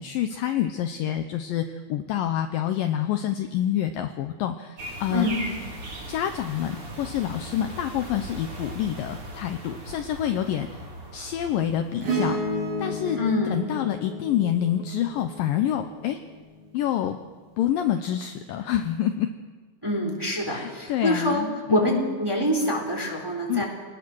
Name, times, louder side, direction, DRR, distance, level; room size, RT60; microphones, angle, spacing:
voice 1, 0.0-5.3 6.1-10.9 11.1-12.4 12.8-13.2 13.5-16.2 16.7-17.2 17.6-19.3 20.5-22.0 23.5-23.6, left 10 dB, 80° left, 7 dB, 2.0 m, -27 dB
sound 1, 4.8-13.0, right 1 dB, 35° right, 4.0 m, -39 dB
voice 2, 5.1-5.4 13.1-13.6 19.8-23.7, left 1 dB, 5° right, 0 dB, 3.2 m, -25 dB
Acoustic guitar / Strum, 12.0-16.6 18.5-18.6, equal, 80° right, 9.9 m, -31 dB
26.5 x 19.5 x 6.3 m, 1.4 s
omnidirectional pair, 5.0 m